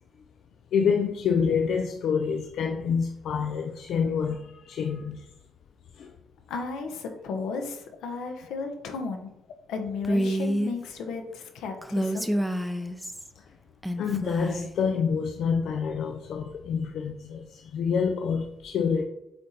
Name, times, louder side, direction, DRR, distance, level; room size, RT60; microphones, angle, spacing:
voice 1, 0.7-5.2 6.0-6.1 14.0-19.0, left 6 dB, 70° left, 0.5 m, -27 dB
voice 2, 6.5-9.3 9.7-12.3, left 4 dB, 90° left, 1.1 m, -34 dB
Female speech woman speaking, 10.0-10.7 11.8-13.3 13.8-14.7, equal, 5° right, 0.6 m, -28 dB
7.7 x 3.3 x 4.3 m
cardioid pair, 90°, 0 cm